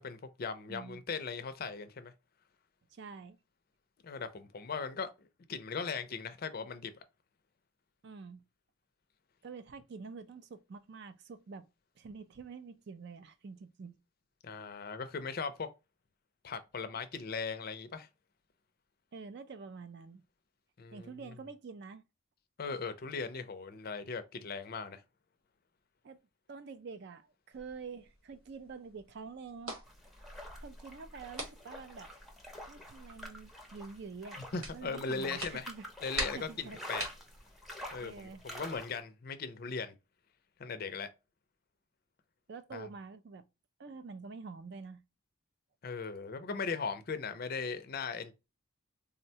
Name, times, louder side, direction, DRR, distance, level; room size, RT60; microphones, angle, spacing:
voice 1, 0.0-2.1 4.0-6.9 14.4-15.7 16.4-18.1 20.8-21.1 22.6-25.0 34.5-35.7 36.0-37.1 37.9-39.9 40.6-41.1 42.7-42.9 45.8-48.3, left 5 dB, 45° left, 0.4 m, -38 dB
voice 2, 0.7-1.0 2.9-3.4 8.0-8.4 9.4-11.7 12.0-13.9 19.1-20.2 20.9-22.0 26.0-26.2 26.5-29.7 30.6-32.1 32.7-34.4 34.7-35.9 36.3-36.8 38.0-38.4 42.5-43.4 43.8-45.0, right 4 dB, 55° right, 0.4 m, -47 dB
sound 1, 27.5-38.8, right 2 dB, 90° right, 1.3 m, -46 dB
sound 2, 29.9-39.0, equal, ahead, 0.6 m, -47 dB
3.7 x 2.1 x 2.7 m
head